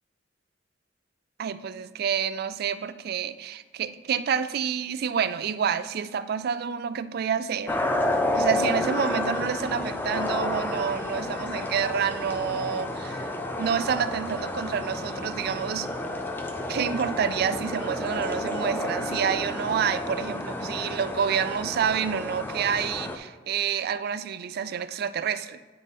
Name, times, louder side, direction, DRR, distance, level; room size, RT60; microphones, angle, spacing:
voice 1, 1.4-7.7 8.3-13.3 13.6-15.9 16.7-25.6, right 7 dB, 55° right, 13 dB, 0.3 m, -28 dB
sound 1, 7.7-23.2, left 1 dB, 10° left, 0.4 m, -30 dB
9.7 x 4.0 x 3.6 m, 1.4 s
head